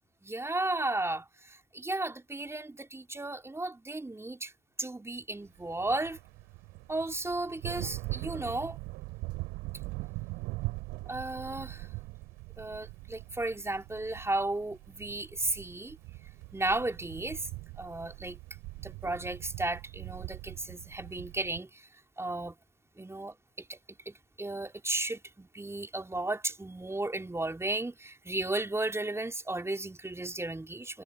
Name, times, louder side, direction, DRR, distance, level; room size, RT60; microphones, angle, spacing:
voice 1, 0.2-4.5 4.8-6.2 6.9-8.8 11.1-11.9 12.6-16.0 16.5-17.5 17.8-18.4 18.8-21.9 22.2-22.6 23.0-23.8 24.1-31.0, right 2 dB, 15° right, 3.8 m, -34 dB
sound 1, 5.6-21.6, right 23 dB, 70° right, 2.9 m, -42 dB
figure-of-eight pair, 45°, 17 cm